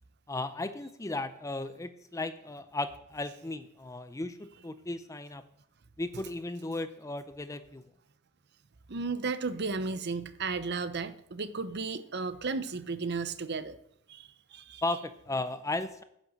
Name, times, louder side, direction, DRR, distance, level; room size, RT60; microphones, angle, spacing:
voice 1, 0.3-5.4 6.0-7.8 14.8-16.0, left 2 dB, 15° left, 11 dB, 0.5 m, -35 dB
voice 2, 8.9-13.8 14.1-14.8, right 4 dB, 50° right, 12 dB, 0.7 m, -34 dB
9.8 x 6.6 x 7.5 m, 0.74 s
head